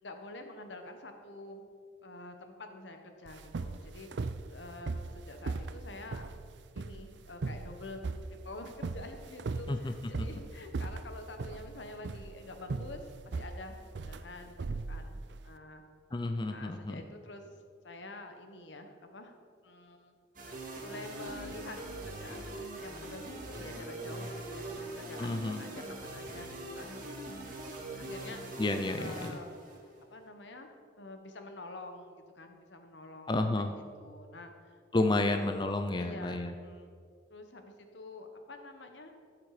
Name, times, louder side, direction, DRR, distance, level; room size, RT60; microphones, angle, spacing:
voice 1, 0.0-1.6 2.0-6.3 6.7-8.0 8.3-15.8 16.5-17.5 17.8-19.3 19.6-20.1 20.8-21.8 22.0-27.1 27.9-28.6 29.0-29.5 30.1-35.5 36.0-36.9 37.3-39.1, left 2 dB, 75° left, 5 dB, 1.2 m, -47 dB
sound 1, 3.3-15.5, right 3 dB, 70° right, 0.5 m, -39 dB
voice 2, 16.1-17.0 25.2-25.6 28.6-29.3 33.3-33.7 34.9-36.5, left 2 dB, 25° left, 6 dB, 0.5 m, -31 dB
sound 2, 20.3-30.0, right 2 dB, 50° right, 2.0 m, -42 dB
13.0 x 7.5 x 4.9 m, 2.1 s
head